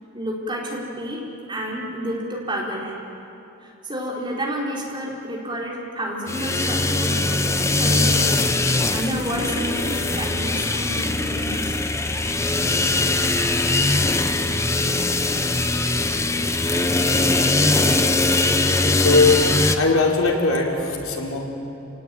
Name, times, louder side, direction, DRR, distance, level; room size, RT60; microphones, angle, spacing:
voice 1, 0.1-3.0 3.6-11.8 15.3-15.5, equal, 25° right, -3 dB, 4.4 m, -30 dB
sound 1, 6.3-19.8, left 2 dB, 15° left, 0.8 m, -21 dB
voice 2, 18.6-21.4, left 3 dB, 85° left, -1 dB, 4.1 m, -20 dB
29.5 x 18.5 x 9.4 m, 2.8 s
head